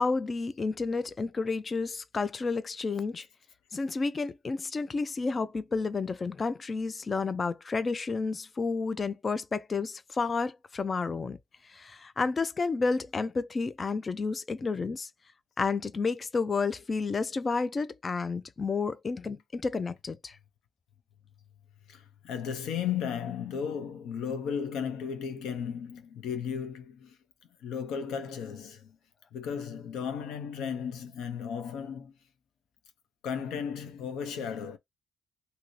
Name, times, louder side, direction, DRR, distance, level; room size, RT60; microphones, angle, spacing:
voice 1, 0.0-3.3 3.7-11.4 11.6-15.1 15.6-20.4, left 4 dB, 35° left, 0.3 m, -31 dB
voice 2, 21.9-27.2 27.6-29.0 29.3-32.1 33.2-34.8, left 7 dB, 85° left, 0.6 m, -35 dB
2.7 x 2.6 x 3.0 m
cardioid pair, 90°, 0 cm